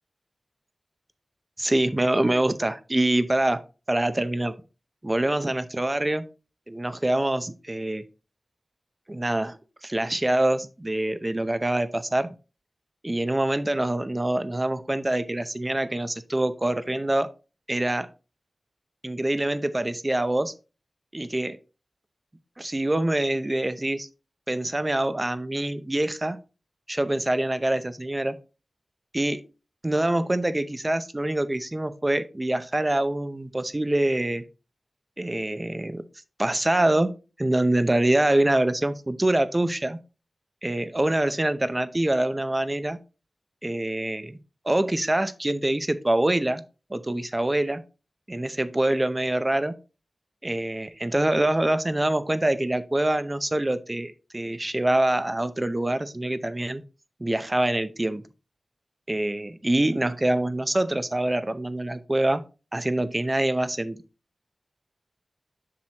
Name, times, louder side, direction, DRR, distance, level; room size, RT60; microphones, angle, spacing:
voice 1, 1.6-4.5 5.0-6.2 6.7-8.0 9.1-9.6 9.8-12.3 13.0-17.3 17.7-18.1 19.0-20.5 21.1-21.6 22.6-24.1 24.5-26.4 26.9-28.4 29.1-29.4 29.8-34.4 35.2-36.0 36.4-40.0 40.6-43.0 43.6-44.4 44.6-46.6 46.9-47.8 48.3-49.7 50.4-56.8 57.2-58.2 59.1-62.4 62.7-64.0, right 1 dB, 25° right, 12 dB, 0.7 m, -25 dB
7.5 x 6.0 x 2.9 m, 0.32 s
wide cardioid pair, 95°, 0 cm